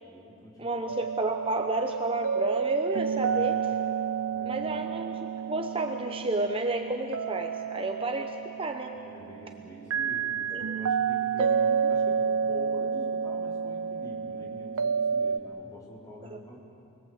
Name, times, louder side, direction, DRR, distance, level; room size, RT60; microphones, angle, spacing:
voice 1, 0.0-0.7 3.1-3.5 4.3-4.9 9.0-11.6 11.9-16.6, equal, 20° left, -3 dB, 4.3 m, -46 dB
voice 2, 0.6-3.6 4.4-9.0 10.5-10.7 11.4-11.8 16.3-16.4, right 2 dB, 25° right, 4 dB, 0.9 m, -31 dB
sound 1, 0.9-15.4, right 6 dB, 85° right, 0.7 m, -30 dB
29.0 x 21.0 x 8.1 m, 2.7 s
head